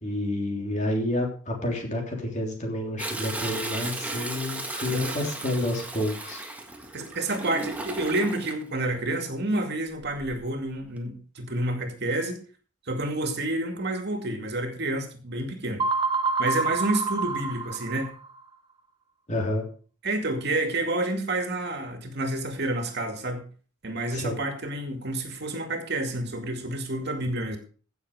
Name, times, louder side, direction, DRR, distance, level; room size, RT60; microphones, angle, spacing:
voice 1, 0.0-6.4 19.3-19.6 24.1-24.4, left 1 dB, 35° left, 1 dB, 3.4 m, -29 dB
Toilet flush, 3.0-8.5 10.0-10.5 11.0-11.1, right 2 dB, 5° right, 1.7 m, -35 dB
voice 2, 4.9-5.3 6.9-12.4 12.9-15.8 16.4-18.1 20.0-23.4 23.8-27.6, right 2 dB, 55° right, 5 dB, 2.3 m, -29 dB
sound 1, 15.8-18.4, right 4 dB, 25° right, 0.6 m, -27 dB
16.0 x 6.9 x 4.9 m, 0.40 s
head